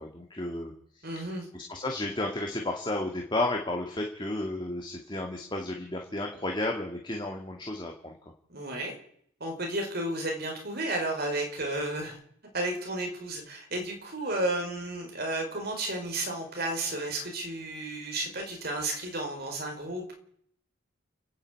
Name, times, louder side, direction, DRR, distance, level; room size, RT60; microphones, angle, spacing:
voice 1, 0.0-8.2, left 2 dB, 20° left, 1 dB, 2.2 m, -33 dB
voice 2, 1.0-1.5 8.5-8.9 9.4-12.2 12.5-20.1, right 1 dB, 50° right, 2 dB, 5.0 m, -32 dB
30.0 x 10.0 x 8.6 m, 0.66 s
head